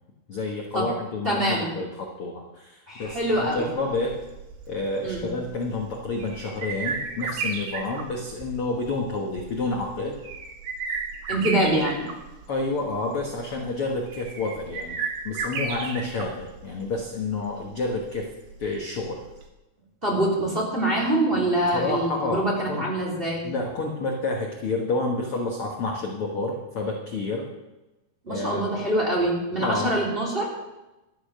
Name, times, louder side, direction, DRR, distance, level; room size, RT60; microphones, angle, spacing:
voice 1, 0.3-4.2 4.7-10.2 12.5-15.0 15.2-18.3 18.6-19.2 21.7-22.8 23.4-27.5 28.3-28.7 29.6-29.9, left 2 dB, 60° left, 0 dB, 1.4 m, -29 dB
voice 2, 1.2-1.8 2.9-3.7 5.0-5.4 11.3-12.0 20.0-23.4 28.2-30.5, right 1 dB, 15° right, -2 dB, 2.7 m, -25 dB
sound 1, 3.0-19.5, right 5 dB, 85° right, 3.7 m, -35 dB
12.5 x 9.9 x 6.6 m, 1.0 s
omnidirectional pair, 4.6 m